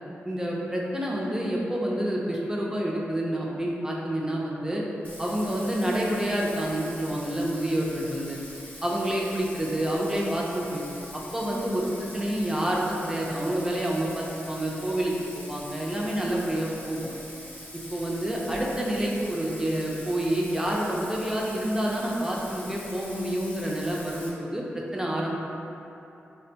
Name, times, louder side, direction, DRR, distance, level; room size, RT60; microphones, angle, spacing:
voice 1, 0.2-4.8 5.2-8.4 8.8-10.8 11.1-11.9 12.1-17.0 17.9-25.4, right 1 dB, 15° right, -4 dB, 0.5 m, -28 dB
Bathtub (filling or washing), 5.0-24.3, left 1 dB, 35° left, 0.8 m, -44 dB
3.3 x 2.2 x 2.8 m, 2.9 s
cardioid pair, 45°, 5 cm